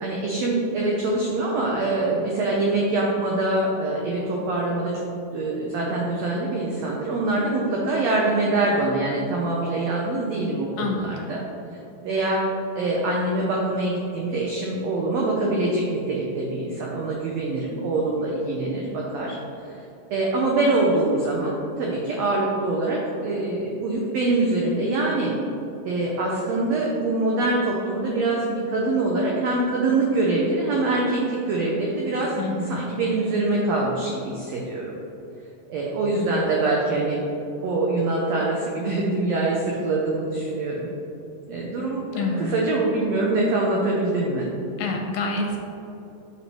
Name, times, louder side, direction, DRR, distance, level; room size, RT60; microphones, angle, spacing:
voice 1, 0.0-5.1 5.3-11.4 12.0-19.4 19.7-19.8 20.1-25.3 25.8-32.4 32.7-35.0 35.7-37.2 37.6-40.9 41.5-44.5, right 2 dB, 90° right, -2 dB, 1.4 m, -24 dB
voice 2, 10.8-11.3 32.4-33.0 36.1-36.4 42.2-42.6 44.8-45.6, left 2 dB, 80° left, 2 dB, 2.1 m, -28 dB
6.9 x 5.7 x 3.1 m, 2.8 s
omnidirectional pair, 3.9 m